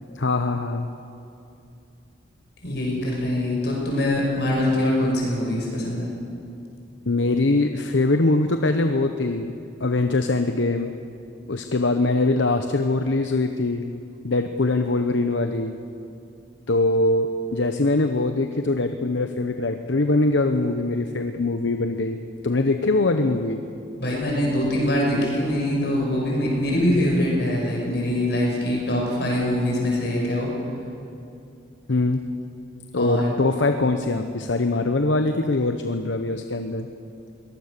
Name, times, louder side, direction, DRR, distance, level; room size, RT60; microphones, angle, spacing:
voice 1, 0.1-0.9 7.1-9.5 9.8-10.9 11.5-13.8 14.2-15.7 16.7-23.6 31.9-32.2 32.9-36.9, left 2 dB, 80° left, 7 dB, 1.0 m, -22 dB
voice 2, 2.6-6.1 24.0-30.5 32.9-33.3, left 1 dB, 60° left, -2 dB, 6.2 m, -23 dB
22.5 x 18.5 x 6.8 m, 2.6 s
head